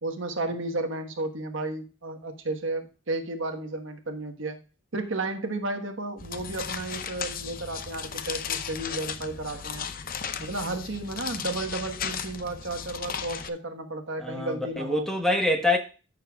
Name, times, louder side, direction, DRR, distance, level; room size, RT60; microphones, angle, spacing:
voice 1, 0.0-4.6 4.9-9.9 10.4-15.1, right 2 dB, 65° right, 1.3 m, -33 dB
sound 1, 6.2-13.5, left 7 dB, 40° left, 0.6 m, -35 dB
voice 2, 14.2-15.8, left 2 dB, ahead, 1.1 m, -25 dB
14.5 x 6.7 x 2.3 m
head